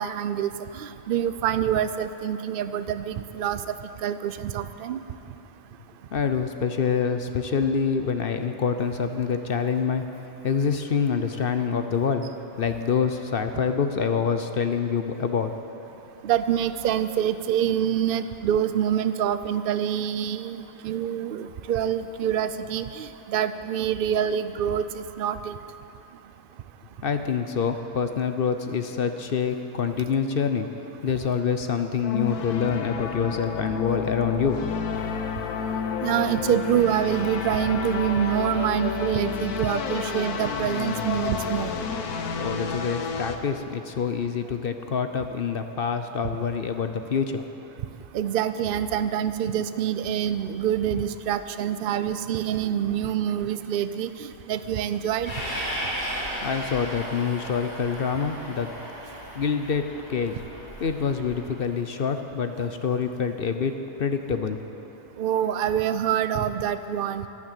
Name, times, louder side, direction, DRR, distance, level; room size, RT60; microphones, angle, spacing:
voice 1, 0.0-3.6 4.0-5.0 16.2-25.5 36.0-41.7 48.1-55.3 65.2-67.3, right 9 dB, 85° right, 12 dB, 0.4 m, -26 dB
voice 2, 6.1-10.0 10.4-12.3 12.6-15.5 27.0-30.7 31.0-34.6 42.4-47.4 56.4-58.7 59.3-60.4 60.8-63.7 64.0-64.6, left 6 dB, 50° left, 8 dB, 0.7 m, -26 dB
sound 1, 32.0-43.4, left 6 dB, 80° left, 1.4 m, -30 dB
Train, 55.2-61.6, equal, 30° left, 4.0 m, -35 dB
12.0 x 11.5 x 9.0 m, 2.9 s
omnidirectional pair, 1.6 m